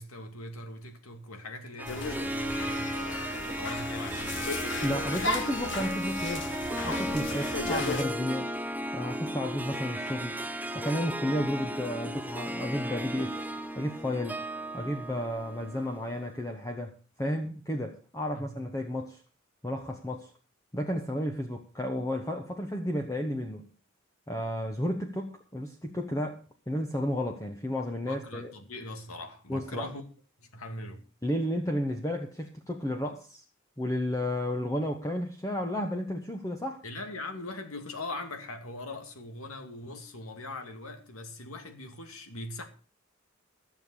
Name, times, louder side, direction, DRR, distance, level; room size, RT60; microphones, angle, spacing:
voice 1, 0.0-4.6 18.3-18.6 28.0-30.0 30.4-31.0 36.8-42.7, left 2 dB, 80° left, 2.6 m, -41 dB
Harp, 1.8-16.3, right 1 dB, 10° right, 0.7 m, -35 dB
sound 1, 1.9-8.0, left 3 dB, 55° left, 1.7 m, -35 dB
voice 2, 4.8-6.5 6.8-8.5 8.9-10.3 10.7-13.4 13.8-14.4 14.7-19.2 19.6-20.3 20.7-23.7 24.3-28.5 29.5-29.9 31.2-33.4 33.8-36.8, equal, 15° left, 1.2 m, -32 dB
14.5 x 7.3 x 6.4 m
head